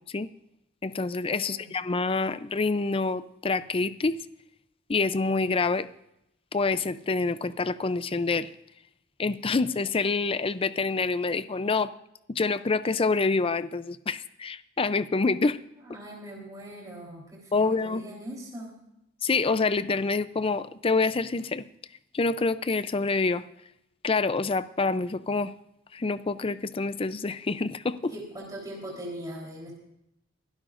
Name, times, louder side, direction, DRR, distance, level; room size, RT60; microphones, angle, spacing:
voice 1, 0.8-4.2 4.9-5.9 6.5-8.5 9.2-11.9 12.3-15.6 17.5-18.0 19.2-21.6 22.1-23.4 24.0-25.5 25.9-28.1, left 3 dB, 30° left, 14 dB, 0.5 m, -27 dB
voice 2, 1.4-1.7 15.8-18.7 28.1-29.7, equal, 20° right, -3 dB, 3.7 m, -40 dB
24.0 x 12.5 x 2.5 m, 0.83 s
head